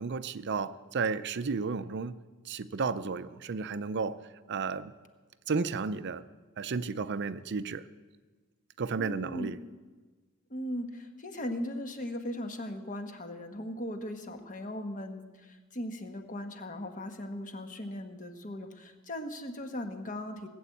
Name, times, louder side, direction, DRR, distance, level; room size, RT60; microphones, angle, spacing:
voice 1, 0.0-2.1 2.5-4.2 4.5-4.9 5.5-6.2 6.6-7.8 8.8-9.6, right 4 dB, 55° right, 13 dB, 0.5 m, -33 dB
voice 2, 9.0-9.5 10.5-20.5, left 1 dB, 40° left, 6 dB, 1.3 m, -38 dB
18.5 x 7.9 x 8.4 m, 1.3 s
head